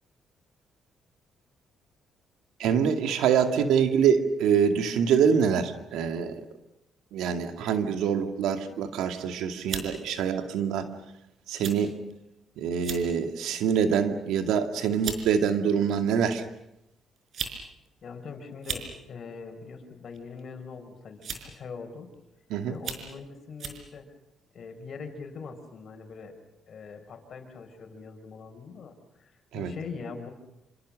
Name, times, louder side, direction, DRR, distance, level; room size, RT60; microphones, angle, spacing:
voice 1, 2.6-6.4 7.1-10.9 11.5-11.9 12.6-16.4 22.5-22.8 29.5-29.7, right 7 dB, 90° right, 6 dB, 2.3 m, -25 dB
sound 1, 9.0-9.2 9.7-9.9 10.7-10.9 11.6-11.8 12.1-12.2 12.7-13.1 13.6-13.9 14.6-14.7 15.0-15.2 16.3-16.4 17.2-17.6 17.8-17.9 18.5-18.9 20.1-20.4 21.2-21.6 22.1-22.2 22.7-23.1 23.6-23.8, right 6 dB, 65° right, 4.9 m, -35 dB
voice 2, 18.0-22.1 22.6-24.1 24.5-26.4 26.7-30.3, left 5 dB, 55° left, 6 dB, 5.2 m, -42 dB
27.5 x 27.5 x 6.5 m, 0.85 s
cardioid pair, 90°, 0 cm